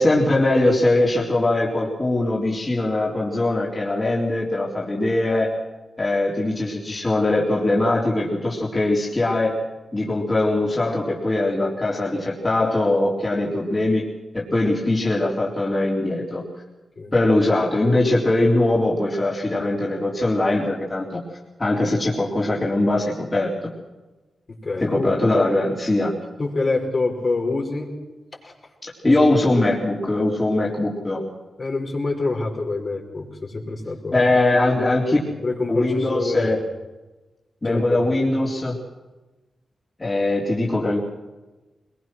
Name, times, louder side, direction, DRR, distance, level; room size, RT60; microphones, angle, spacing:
voice 1, 0.0-5.5 6.0-9.5 9.9-14.0 14.3-16.4 17.1-21.2 21.6-23.7 24.8-26.1 28.8-31.2 34.1-35.2 35.7-36.6 37.6-38.8 40.0-41.0, left 2 dB, 30° left, -4 dB, 4.2 m, -21 dB
voice 2, 24.6-25.1 26.4-27.9 28.4-28.5 29.0-29.4 31.6-34.2 35.4-36.5 37.6-38.1, left 3 dB, 50° left, 0 dB, 5.3 m, -26 dB
21.5 x 21.5 x 6.3 m, 1.2 s
cardioid pair, 55°, 0 cm